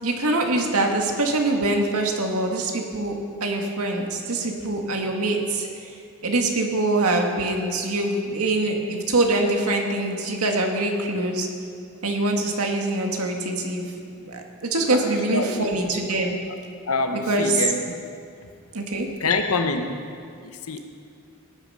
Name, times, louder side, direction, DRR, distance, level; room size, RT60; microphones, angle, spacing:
voice 1, 0.0-3.1 3.4-11.5 12.0-13.9 14.2-16.4 17.3-17.6 18.7-19.1, right 2 dB, 85° right, 2 dB, 1.9 m, -24 dB
voice 2, 14.9-15.7 16.9-17.8 19.2-20.8, left 3 dB, 80° left, 6 dB, 1.1 m, -26 dB
18.5 x 9.5 x 5.6 m, 2.3 s
head